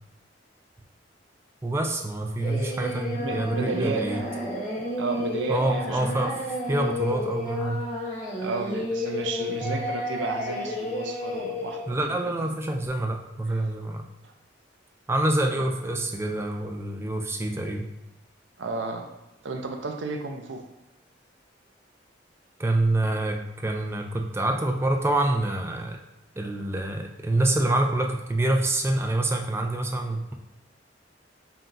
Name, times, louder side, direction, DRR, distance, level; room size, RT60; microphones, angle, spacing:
voice 1, 1.6-4.2 5.5-7.9 9.6-9.8 11.9-14.0 15.1-17.9 22.6-26.0 26.4-30.3, right 1 dB, 15° right, 3 dB, 0.3 m, -26 dB
Singing, 2.4-11.8, left 1 dB, 40° left, 1.1 m, -31 dB
voice 2, 3.2-4.1 4.8-6.3 8.4-12.0 14.2-14.3 18.6-19.1 19.4-20.6, right 3 dB, 80° right, 4 dB, 0.5 m, -32 dB
5.6 x 2.3 x 2.6 m, 0.97 s
head